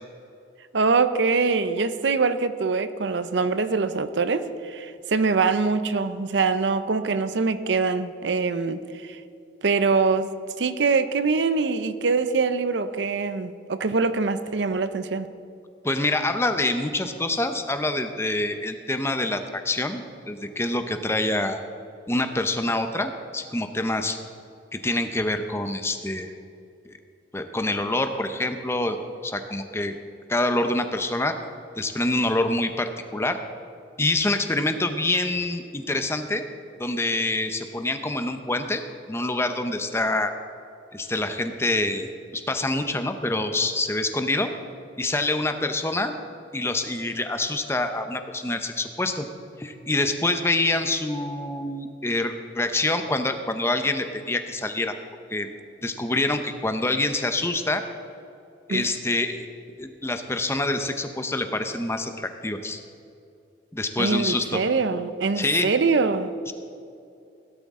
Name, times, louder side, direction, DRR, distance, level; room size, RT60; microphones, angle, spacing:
voice 1, 0.7-9.2 9.6-15.3 58.7-58.9 64.0-66.3, right 4 dB, 75° right, 12 dB, 0.6 m, -24 dB
voice 2, 15.8-21.6 22.1-24.2 24.7-26.3 26.9-27.0 27.3-29.0 29.2-29.9 30.3-31.4 31.8-33.4 34.0-36.4 36.8-38.8 39.1-40.3 40.9-44.5 45.0-46.1 46.5-49.3 49.6-55.0 55.3-55.5 55.8-57.8 58.7-59.5 59.8-62.8 63.7-64.6 65.4-65.7 66.5-66.6, left 2 dB, 15° left, 7 dB, 0.7 m, -26 dB
16.5 x 12.0 x 3.7 m, 2.5 s
head